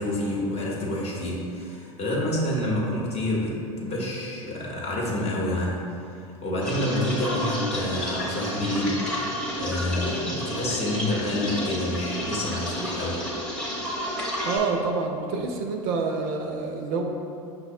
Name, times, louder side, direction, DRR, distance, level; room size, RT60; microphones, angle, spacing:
voice 1, 0.0-5.9 6.4-9.1 9.6-13.2, left 1 dB, 35° left, -4 dB, 0.8 m, -28 dB
sound 1, 6.6-14.6, equal, 5° left, 0.9 m, -31 dB
voice 2, 14.5-17.0, right 4 dB, 50° right, 3 dB, 0.4 m, -27 dB
5.6 x 2.0 x 2.6 m, 2.5 s
hypercardioid pair, 85°, 18 cm